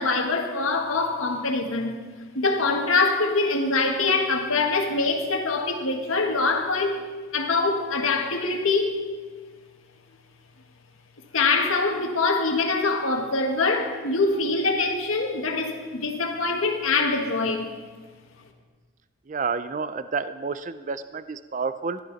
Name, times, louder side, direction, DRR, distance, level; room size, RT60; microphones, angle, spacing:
voice 1, 0.0-1.9 2.3-7.0 7.3-9.0 11.3-17.7, left 3 dB, 85° left, 3 dB, 1.7 m, -24 dB
voice 2, 19.3-22.0, right 5 dB, 35° right, 12 dB, 0.4 m, -30 dB
17.0 x 12.0 x 4.1 m, 1.4 s
head